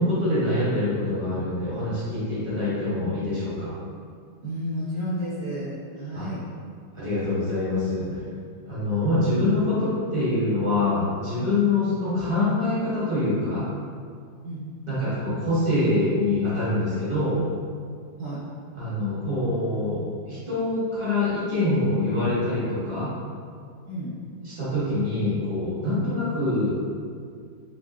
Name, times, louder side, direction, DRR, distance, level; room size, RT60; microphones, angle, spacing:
voice 1, 0.0-3.7 6.1-6.3 6.9-8.2 8.7-13.7 14.8-17.4 18.7-23.1 24.4-26.8, left 2 dB, 45° right, -11 dB, 0.3 m, -25 dB
voice 2, 4.4-6.4 14.4-14.6 18.2-18.4 23.9-24.1, equal, 65° right, -9 dB, 0.9 m, -31 dB
3.9 x 2.9 x 2.4 m, 2.1 s
omnidirectional pair, 2.4 m